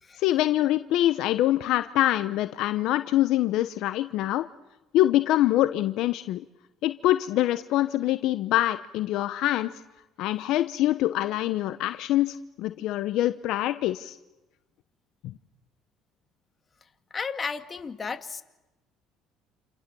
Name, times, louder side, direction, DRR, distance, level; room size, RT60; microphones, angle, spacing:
voice 1, 0.2-4.5 4.9-6.4 6.8-9.7 10.2-14.2 15.2-15.3, left 14 dB, 70° left, 11 dB, 0.9 m, -25 dB
voice 2, 17.1-18.4, left 5 dB, 30° left, 7 dB, 2.2 m, -33 dB
29.0 x 29.0 x 7.0 m, 1.0 s
supercardioid pair, 80°, 0 cm